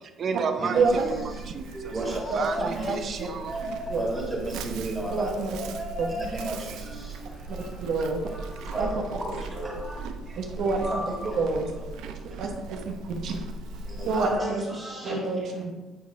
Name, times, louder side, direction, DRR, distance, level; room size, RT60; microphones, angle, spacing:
voice 1, 0.2-1.7 2.3-3.5, right 5 dB, 40° right, 7 dB, 0.5 m, -32 dB
Livestock farm animals working animals, 0.7-14.4, right 4 dB, 90° right, 0.6 m, -39 dB
voice 2, 1.7-2.2 2.6-3.0 3.5-5.3 5.6-7.0 8.7-8.9 9.2-9.9 10.8-11.4 13.9-15.1, right 1 dB, 10° right, -4 dB, 2.2 m, -33 dB
sound 1, 2.1-8.6, left 2 dB, 15° left, 0.5 m, -44 dB
voice 3, 2.3-3.3 3.9-4.0 5.1-5.6 6.0-6.1 7.5-8.2 8.8-8.9 10.4-10.8 11.3-11.7 12.4-13.4 14.0-14.6 15.0-15.7, right 4 dB, 60° right, 2 dB, 0.9 m, -28 dB
8.8 x 3.5 x 5.1 m, 1.2 s
cardioid pair, 155°, 0 cm